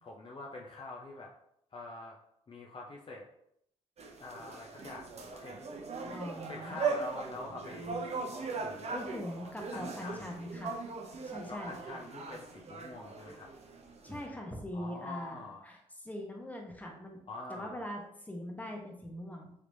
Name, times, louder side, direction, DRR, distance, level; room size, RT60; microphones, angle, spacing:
voice 1, 0.0-1.3 1.7-2.2 2.5-3.2 4.2-5.6 6.0-6.2 6.5-8.0 8.6-9.0 9.4-10.4 11.5-13.5 14.7-15.7 17.3-17.9, left 2 dB, 35° left, -2 dB, 0.5 m, -45 dB
sound 1, 4.0-14.2, right 4 dB, 45° right, 0.6 m, -40 dB
voice 2, 6.1-6.8 8.9-10.8 11.2-11.7 14.0-15.4 15.6-17.2 17.5-19.5, left 1 dB, 10° left, 1 dB, 0.9 m, -42 dB
3.3 x 2.9 x 2.6 m, 0.74 s
hypercardioid pair, 45°, 16 cm